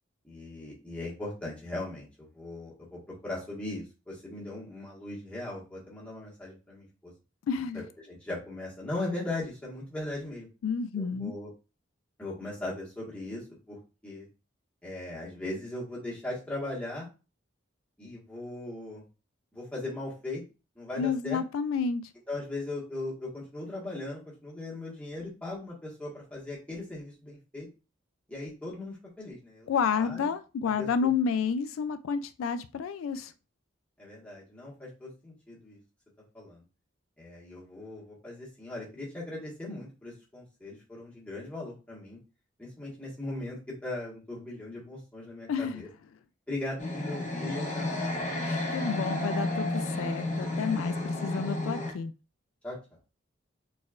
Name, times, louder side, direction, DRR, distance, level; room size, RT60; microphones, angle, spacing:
voice 1, 0.2-7.1 7.7-10.5 10.9-11.5 12.2-13.8 14.0-14.3 14.8-17.1 18.0-19.0 19.5-20.4 20.7-21.4 22.3-27.7 28.3-29.7 29.9-30.3 30.8-30.9 34.0-35.8 36.3-36.6 37.2-42.2 42.6-45.9 46.5-48.3 52.6-52.8, left 2 dB, 5° left, -6 dB, 1.4 m, -39 dB
voice 2, 7.5-7.9 10.6-11.3 21.0-22.1 29.7-33.3 45.5-45.8 48.4-52.1, left 6 dB, 90° left, 11 dB, 0.3 m, -30 dB
sound 1, 46.8-51.9, left 2 dB, 35° left, 0.8 m, -32 dB
4.3 x 3.3 x 2.4 m, 0.32 s
head